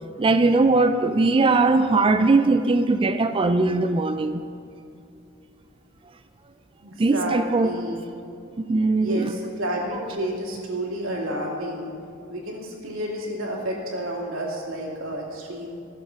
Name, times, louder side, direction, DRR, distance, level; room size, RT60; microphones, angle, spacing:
voice 1, 0.2-4.4 7.0-7.7 8.6-9.3, right 3 dB, 25° right, 0.4 m, -20 dB
voice 2, 6.8-8.0 9.0-11.9 12.3-15.8, equal, 80° right, 2.6 m, -30 dB
15.0 x 7.4 x 5.8 m
head